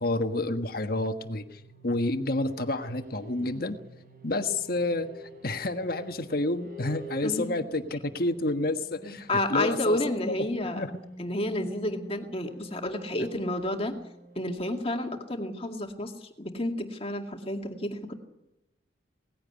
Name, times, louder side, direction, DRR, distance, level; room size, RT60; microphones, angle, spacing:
voice 1, 0.0-3.8 4.2-5.1 5.4-10.0 10.3-10.9, left 2 dB, 50° left, 8 dB, 1.5 m, -29 dB
sound 1, 1.2-15.9, right 1 dB, 50° right, 5.4 m, -49 dB
voice 2, 7.2-7.5 9.0-10.9 11.2-14.0 14.4-16.1 16.4-18.1, left 1 dB, 30° left, 4 dB, 2.1 m, -30 dB
19.0 x 15.5 x 9.6 m, 0.88 s
head